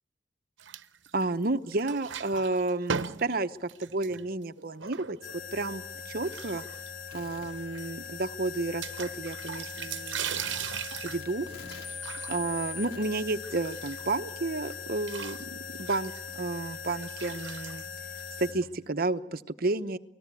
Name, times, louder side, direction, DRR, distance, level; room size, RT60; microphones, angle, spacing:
sound 1, 0.6-1.4 1.7-5.5 6.2-7.2 7.5-7.6 7.7-7.8 8.8-14.3 14.6-18.6, right 7 dB, 85° right, 0.9 m, -39 dB
voice 1, 1.1-6.6 7.1-10.5 11.0-11.8 12.3-17.8 18.4-20.0, right 2 dB, 55° right, 11 dB, 0.9 m, -31 dB
sound 2, 5.2-18.5, left 6 dB, 75° left, 6.1 m, -41 dB
29.0 x 19.5 x 8.4 m, 0.91 s
head